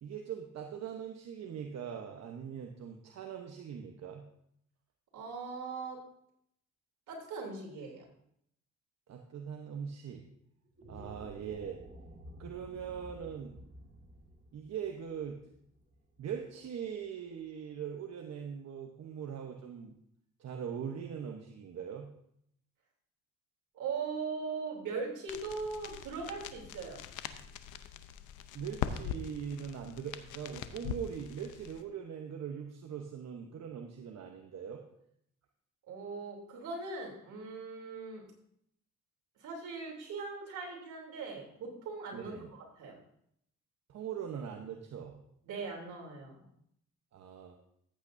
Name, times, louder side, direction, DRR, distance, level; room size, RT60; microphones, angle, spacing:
voice 1, 0.0-4.2 9.1-10.2 10.9-11.8 12.4-13.6 14.5-15.4 16.2-20.0 20.4-22.1 28.5-34.8 42.1-42.5 43.9-45.2 47.1-47.5, right 7 dB, 60° right, 2 dB, 1.0 m, -41 dB
voice 2, 5.1-6.0 7.1-8.0 10.9-11.1 23.7-27.0 35.9-38.3 39.4-43.0 45.5-46.4, right 4 dB, 80° right, -1 dB, 3.2 m, -40 dB
sound 1, 10.6-17.0, equal, 40° right, 2.0 m, -53 dB
sound 2, 25.3-31.8, left 9 dB, 90° left, 0.7 m, -42 dB
14.0 x 8.6 x 2.6 m, 0.72 s
cardioid pair, 90°, 30 cm